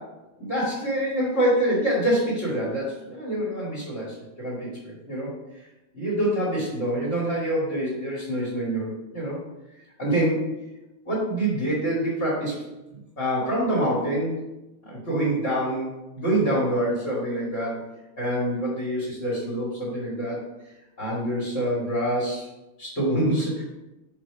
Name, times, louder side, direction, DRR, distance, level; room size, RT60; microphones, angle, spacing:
voice 1, 0.4-5.6 5.9-9.4 10.0-10.5 11.1-12.6 12.9-14.4 14.8-17.8 18.2-20.4 21.0-22.5 22.8-23.6, right 1 dB, 35° left, -7 dB, 2.6 m, -26 dB
5.4 x 4.8 x 5.0 m, 0.97 s
omnidirectional pair, 2.3 m